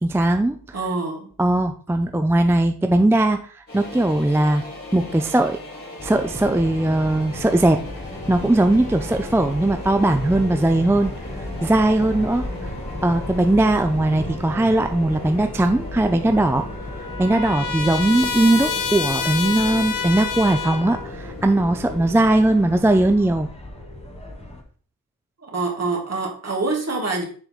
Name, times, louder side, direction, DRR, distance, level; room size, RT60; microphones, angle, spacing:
voice 1, 0.0-0.8 1.4-4.6 4.9-5.6 6.0-7.8 8.3-11.1 11.6-12.7 13.0-16.7 17.2-23.5, right 1 dB, 5° right, 7 dB, 0.4 m, -19 dB
voice 2, 0.7-1.3 25.5-27.2, right 3 dB, 50° right, 0 dB, 1.8 m, -25 dB
sound 1, 3.7-23.1, left 2 dB, 40° left, 3.1 m, -38 dB
sound 2, 6.0-24.6, left 1 dB, 20° left, 1.3 m, -35 dB
Trumpet, 16.3-21.1, left 5 dB, 65° left, 0.7 m, -28 dB
7.0 x 3.8 x 4.3 m, 0.43 s
wide cardioid pair, 110°, 34 cm